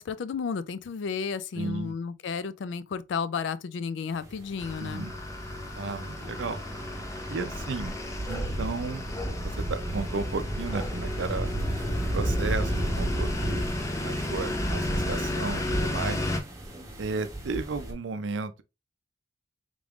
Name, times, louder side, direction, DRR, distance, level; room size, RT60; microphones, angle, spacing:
voice 1, 0.0-5.1, left 6 dB, 70° left, 0.3 m, -32 dB
voice 2, 1.6-2.0 4.8-5.1 5.8-6.6 7.3-8.0 8.3-9.0 9.4-11.5 12.1-13.6 14.0-16.2 17.0-18.6, right 4 dB, 75° right, 0.5 m, -34 dB
sound 1, 4.2-17.9, right 1 dB, 15° right, 0.9 m, -33 dB
sound 2, 4.6-16.4, left 1 dB, 15° left, 0.5 m, -34 dB
3.7 x 3.5 x 2.4 m
head